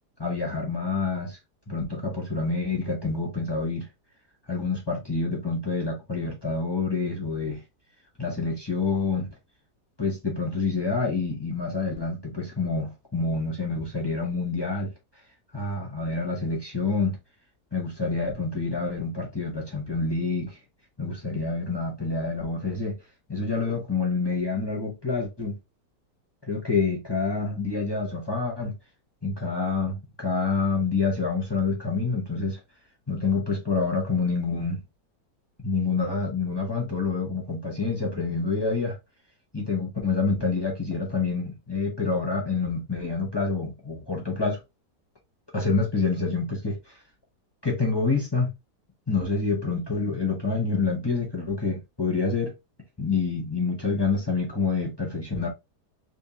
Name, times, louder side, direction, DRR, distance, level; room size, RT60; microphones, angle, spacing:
voice 1, 0.2-1.4 1.7-3.9 4.5-7.6 8.2-9.3 10.0-14.9 15.5-17.2 17.7-20.6 21.0-23.0 23.3-25.5 26.4-28.7 29.2-32.6 33.1-34.8 35.6-39.0 39.5-44.6 45.5-47.0 47.6-48.5 49.1-52.5 53.0-55.5, left 4 dB, 20° left, 0.7 m, -27 dB
3.5 x 3.1 x 2.8 m
omnidirectional pair, 1.8 m